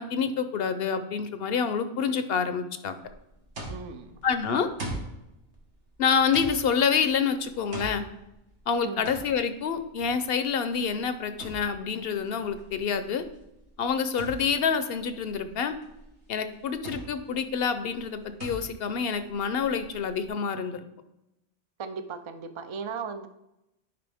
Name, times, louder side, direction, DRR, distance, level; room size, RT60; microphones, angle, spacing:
voice 1, 0.0-3.0 4.2-4.7 6.0-8.1 8.7-13.2 13.8-15.7 16.3-20.8, left 6 dB, 65° left, 10 dB, 0.8 m, -27 dB
sound 1, 3.0-20.3, right 2 dB, 90° right, 1.8 m, -43 dB
voice 2, 3.7-4.2 8.8-9.1 21.8-23.3, right 5 dB, 40° right, 9 dB, 0.4 m, -37 dB
11.0 x 5.0 x 3.5 m, 0.89 s
omnidirectional pair, 1.1 m